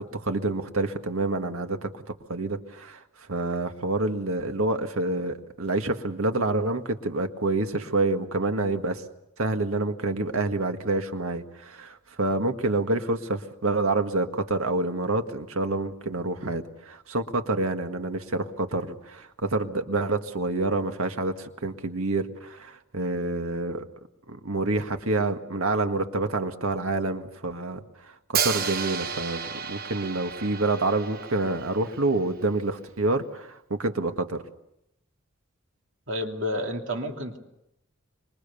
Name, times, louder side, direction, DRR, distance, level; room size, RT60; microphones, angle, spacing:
voice 1, 0.0-1.9 2.3-3.0 3.3-9.0 9.4-23.9 24.3-34.4, right 2 dB, 85° right, 6 dB, 1.8 m, -27 dB
Hi-hat, 28.3-32.3, right 7 dB, 45° right, 1.2 m, -32 dB
voice 2, 36.1-37.4, equal, 60° right, 3 dB, 2.8 m, -30 dB
26.0 x 22.5 x 7.0 m, 0.83 s
head